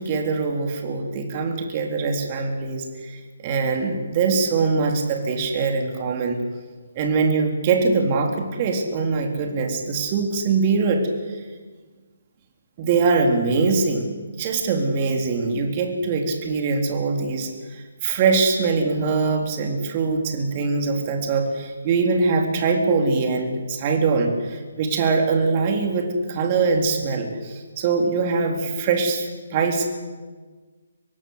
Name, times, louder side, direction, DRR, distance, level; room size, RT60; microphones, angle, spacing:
voice 1, 0.0-6.4 7.0-11.0 12.8-14.1 14.4-29.9, right 4 dB, 30° right, 3 dB, 3.8 m, -22 dB
25.0 x 18.0 x 8.3 m, 1.4 s
figure-of-eight pair, 140°, 0 cm